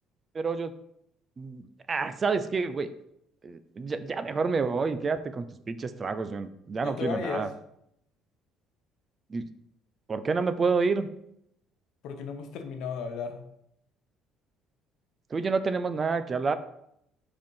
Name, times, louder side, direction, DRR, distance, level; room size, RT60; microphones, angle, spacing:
voice 1, 0.3-0.7 1.4-2.9 3.4-7.5 9.3-9.4 10.1-11.1 15.3-16.5, right 4 dB, 30° right, 11 dB, 0.5 m, -29 dB
voice 2, 6.8-7.5 12.0-13.4, left 5 dB, 75° left, 7 dB, 0.9 m, -34 dB
5.1 x 4.4 x 5.4 m, 0.75 s
cardioid pair, 105°, 0 cm